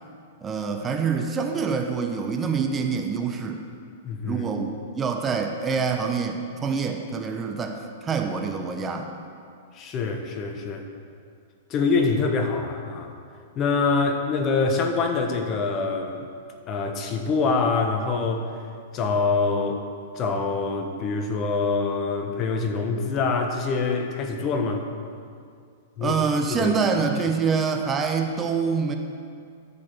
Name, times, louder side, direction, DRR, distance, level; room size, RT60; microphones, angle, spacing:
voice 1, 0.4-3.6 4.2-9.1 26.0-29.0, right 5 dB, 20° right, 4 dB, 0.9 m, -26 dB
voice 2, 4.0-4.7 9.7-10.9 11.7-13.1 13.6-16.3 16.7-18.6 18.9-19.8 20.1-24.8 26.0-26.1 26.6-26.8, left 4 dB, 35° left, 4 dB, 1.2 m, -25 dB
13.0 x 5.2 x 6.1 m, 2.3 s
hypercardioid pair, 110°, 0 cm